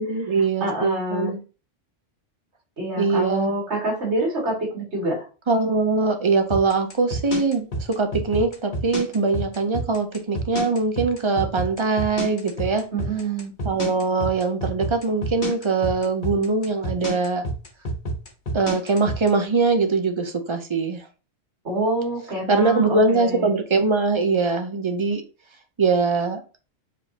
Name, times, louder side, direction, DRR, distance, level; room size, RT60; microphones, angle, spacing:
voice 1, 0.0-1.4 3.0-3.5 5.5-12.8 13.6-17.4 18.5-21.0 22.5-25.2 25.8-26.4, right 4 dB, 35° right, 6 dB, 0.5 m, -22 dB
voice 2, 0.6-1.3 2.8-5.2 12.9-13.5 21.6-23.5, right 1 dB, 60° right, -3 dB, 2.4 m, -26 dB
sound 1, 6.5-19.3, equal, 40° left, 1.2 m, -28 dB
4.9 x 3.7 x 2.8 m, 0.34 s
omnidirectional pair, 1.3 m